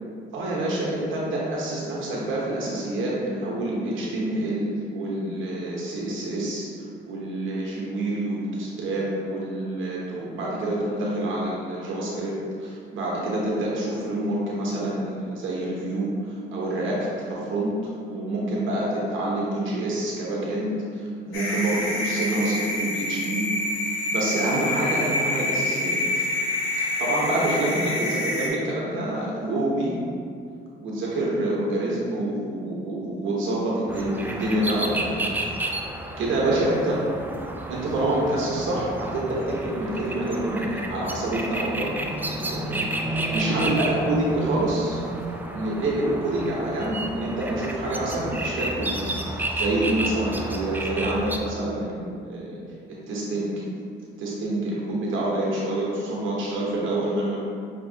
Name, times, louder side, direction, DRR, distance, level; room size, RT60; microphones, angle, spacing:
voice 1, 0.3-6.7 7.1-23.4 23.8-26.3 26.7-29.9 30.8-35.3 36.2-37.0 37.7-42.7 43.1-45.0 45.3-52.6 53.1-53.5 54.2-57.4, right 1 dB, 80° right, -4 dB, 0.9 m, -27 dB
sound 1, 21.3-28.5, left 1 dB, 85° left, 0.9 m, -27 dB
sound 2, 33.9-51.4, right 1 dB, 10° right, 0.4 m, -31 dB
5.8 x 2.9 x 2.7 m, 2.3 s
cardioid pair, 90°, 20 cm